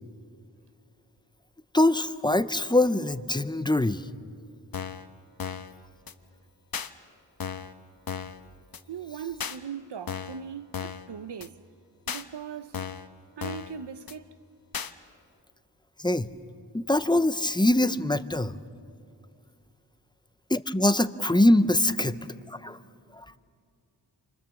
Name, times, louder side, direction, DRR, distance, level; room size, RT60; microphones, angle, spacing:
voice 1, 1.7-4.0 16.0-16.3 16.7-18.6 20.5-22.2 22.5-22.8 23.1-23.2, left 1 dB, 10° left, 0.7 m, -23 dB
sound 1, 4.7-5.1 5.4-5.7 6.1-6.2 6.7-6.9 7.4-7.7 8.1-8.4 8.7-8.8 9.4-9.6 10.1-10.4 10.7-11.1 11.4-11.5 12.1-12.2 12.7-13.1 13.4-13.7 14.1-14.2 14.7-14.9, left 7 dB, 55° left, 1.1 m, -35 dB
voice 2, 8.9-11.6 12.1-12.8 13.4-14.4, right 7 dB, 70° right, 0.9 m, -39 dB
30.0 x 25.0 x 7.1 m
wide cardioid pair, 110°, 43 cm